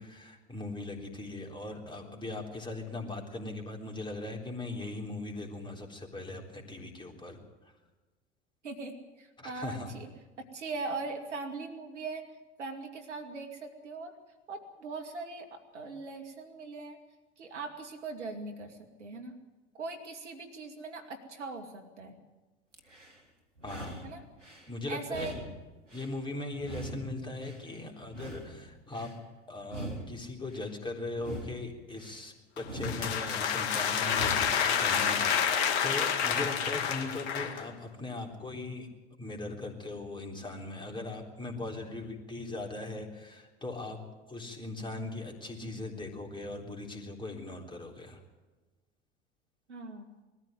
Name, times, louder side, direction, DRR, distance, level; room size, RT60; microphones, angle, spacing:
voice 1, 0.0-7.4 9.4-10.0 23.6-24.0 24.7-25.4 25.9-38.9 39.2-44.0 44.3-48.2, left 2 dB, 15° left, 2 dB, 3.8 m, -39 dB
voice 2, 8.6-10.1 10.5-12.2 12.6-14.1 14.5-17.0 17.4-19.3 19.8-22.1 24.0-24.2 24.9-25.3 49.7-50.1, right 3 dB, 70° right, 5 dB, 2.5 m, -40 dB
sound 1, 22.7-23.2 23.6-24.7 25.1-26.2 26.6-27.7 28.1-29.2 29.6-30.7 31.1-32.2 32.6-33.6 34.0-34.7, equal, 90° right, 1.8 m, -42 dB
sound 2, 32.6-37.7, left 7 dB, 50° left, 2.1 m, -29 dB
20.5 x 14.0 x 9.3 m, 1.2 s
figure-of-eight pair, 75°, 36 cm